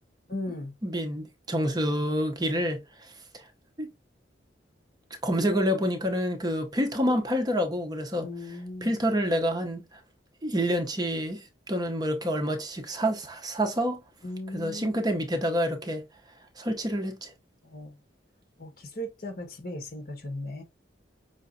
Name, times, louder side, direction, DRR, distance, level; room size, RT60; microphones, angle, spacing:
voice 1, 0.3-0.7 8.2-8.9 14.2-14.9 17.6-18.0 18.6-20.6, left 1 dB, 50° left, 1.4 m, -37 dB
voice 2, 0.8-3.4 3.8-3.9 5.2-8.3 8.8-9.8 10.4-14.0 14.5-16.0 16.6-17.3, equal, 20° right, 0.7 m, -28 dB
5.6 x 3.1 x 2.6 m
head